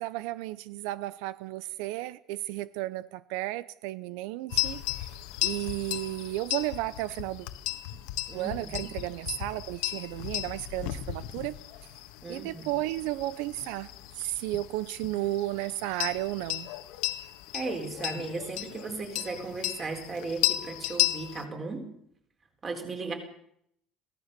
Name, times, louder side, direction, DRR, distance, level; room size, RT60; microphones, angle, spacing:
voice 1, 0.0-5.1 5.4-7.5 8.3-11.6 12.3-13.9 14.2-16.7, right 16 dB, 90° right, 0.7 m, -33 dB
sound 1, 4.5-21.4, left 16 dB, 80° left, 1.5 m, -35 dB
voice 2, 8.3-8.8 12.2-12.6 17.5-21.8 22.6-23.1, right 3 dB, 25° right, 4.0 m, -36 dB
22.5 x 17.0 x 6.8 m
cardioid pair, 175°, 0 cm